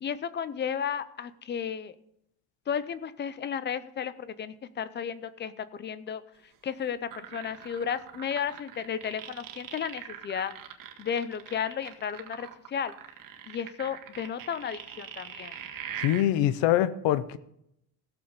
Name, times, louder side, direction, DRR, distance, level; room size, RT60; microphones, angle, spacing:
voice 1, 0.0-1.9 2.7-6.2 6.6-10.5 11.0-12.9 13.5-15.6, left 7 dB, 25° left, 15 dB, 0.5 m, -33 dB
sound 1, 7.1-16.2, right 9 dB, 50° right, 1.7 m, -42 dB
voice 2, 16.0-17.4, left 12 dB, 85° left, 15 dB, 0.8 m, -24 dB
16.5 x 7.2 x 5.3 m, 0.76 s
cardioid pair, 165°, 42 cm